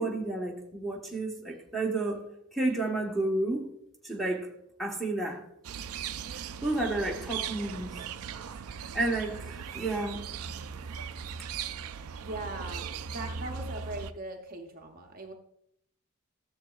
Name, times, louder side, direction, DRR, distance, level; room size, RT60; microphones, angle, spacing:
voice 1, 0.0-2.2 2.5-3.7 4.0-4.5 4.8-5.4 6.6-8.0 8.9-10.2, right 2 dB, ahead, -1 dB, 1.1 m, -31 dB
sound 1, 5.6-14.1, right 7 dB, 80° right, 0.4 m, -39 dB
voice 2, 11.9-15.3, right 2 dB, 40° right, 3 dB, 0.7 m, -40 dB
13.5 x 7.2 x 2.4 m, 0.74 s
head